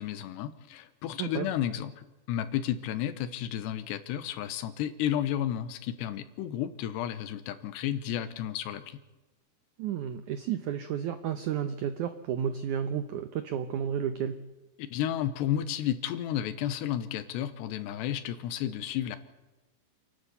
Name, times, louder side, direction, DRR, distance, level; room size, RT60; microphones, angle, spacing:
voice 1, 0.0-9.0 14.8-19.2, left 11 dB, 85° left, 13 dB, 3.3 m, -32 dB
voice 2, 1.2-1.5 9.8-14.4, right 8 dB, 85° right, 10 dB, 1.7 m, -32 dB
28.0 x 12.0 x 8.4 m, 1.1 s
omnidirectional pair, 4.8 m